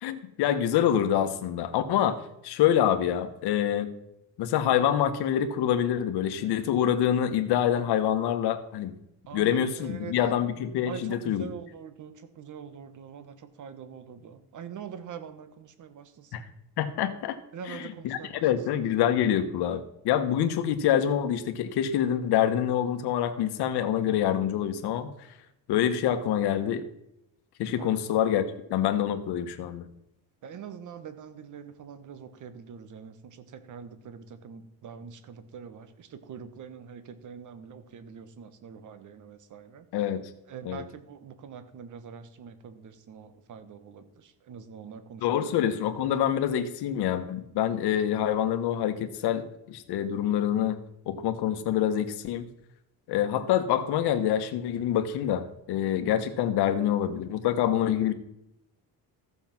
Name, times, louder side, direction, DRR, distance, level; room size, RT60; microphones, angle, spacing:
voice 1, 0.0-3.9 4.4-8.9 9.3-11.5 16.3-16.4 16.8-17.4 17.7-25.1 25.7-26.9 27.6-28.4 28.7-29.9 39.9-40.2 40.6-40.8 45.2-50.8 51.1-52.5 53.1-58.1, left 10 dB, 70° left, 8 dB, 1.4 m, -26 dB
voice 2, 9.3-16.4 17.5-18.5 27.7-28.0 30.4-39.9 40.5-45.6, right 7 dB, 45° right, 12 dB, 1.3 m, -44 dB
14.0 x 7.0 x 6.0 m, 0.81 s
cardioid pair, 135°, 41 cm